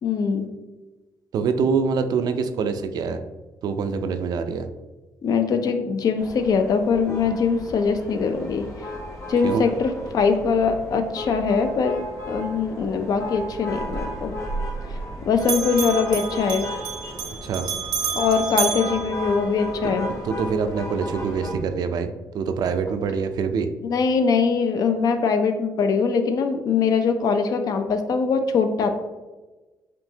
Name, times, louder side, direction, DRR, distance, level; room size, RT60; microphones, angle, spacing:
voice 1, 0.0-0.5 5.2-8.6 9.3-12.0 12.3-14.3 15.3-16.6 18.2-20.1 23.8-28.9, left 5 dB, 60° left, 7 dB, 0.5 m, -22 dB
voice 2, 1.3-3.2 3.6-4.7 9.4-9.6 17.4-17.7 20.2-22.1 22.3-23.7, right 5 dB, 70° right, 8 dB, 0.4 m, -25 dB
sound 1, 6.2-21.5, left 1 dB, 45° left, 1.2 m, -35 dB
Bell, 13.8-15.1 15.4-19.9, right 5 dB, 85° right, 0.8 m, -30 dB
5.2 x 2.7 x 2.8 m, 1.2 s
cardioid pair, 95°, 7 cm